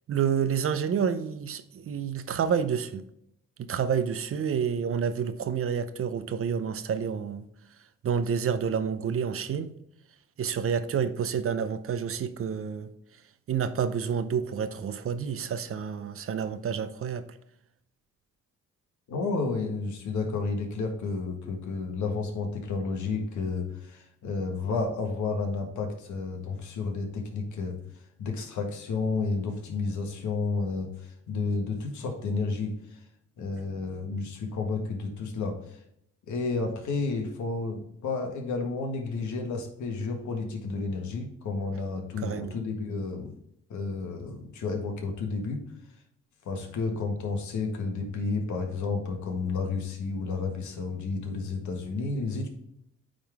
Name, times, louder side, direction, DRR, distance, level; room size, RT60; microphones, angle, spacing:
voice 1, 0.1-3.0 3.6-7.4 8.0-9.7 10.4-12.9 13.5-17.2 42.2-42.6, right 7 dB, 50° right, 12 dB, 0.6 m, -29 dB
voice 2, 19.1-27.8 28.2-33.0 33.4-35.8 36.3-43.3 43.7-45.6 46.5-52.5, left 4 dB, 70° left, 2 dB, 1.6 m, -31 dB
8.8 x 3.8 x 3.5 m, 0.75 s
cardioid pair, 90°, 30 cm